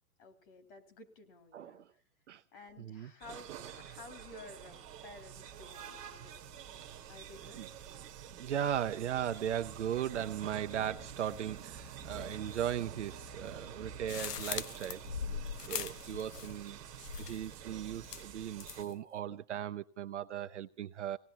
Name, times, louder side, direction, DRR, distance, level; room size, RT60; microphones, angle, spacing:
voice 1, 0.2-1.8 2.5-6.0 6.2-6.3 7.1-7.7, left 3 dB, 35° left, 2.6 m, -53 dB
voice 2, 1.5-1.8 2.3-2.4 2.8-3.1 7.5-7.7 8.4-15.4 15.7-16.8 17.2-21.2, right 10 dB, 50° right, 0.7 m, -37 dB
sound 1, 3.2-18.8, right 8 dB, 15° right, 1.2 m, -48 dB
sound 2, 14.1-16.7 17.0-17.5 18.0-18.9, left 8 dB, 80° left, 0.9 m, -41 dB
27.0 x 18.0 x 2.9 m
hypercardioid pair, 165°, 47 cm